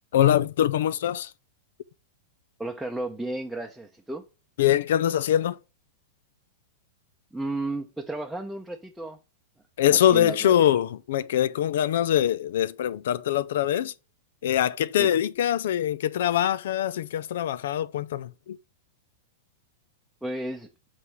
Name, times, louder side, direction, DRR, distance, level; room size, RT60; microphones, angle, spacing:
voice 1, 0.1-1.3 4.6-5.6 9.8-13.9 14.4-18.6, left 11 dB, 75° left, 0.6 m, -23 dB
voice 2, 2.6-4.2 7.3-9.2 9.9-10.7 15.0-15.1 20.2-20.7, right 2 dB, ahead, 0.8 m, -33 dB
7.5 x 4.1 x 4.7 m
hypercardioid pair, 135°, 0 cm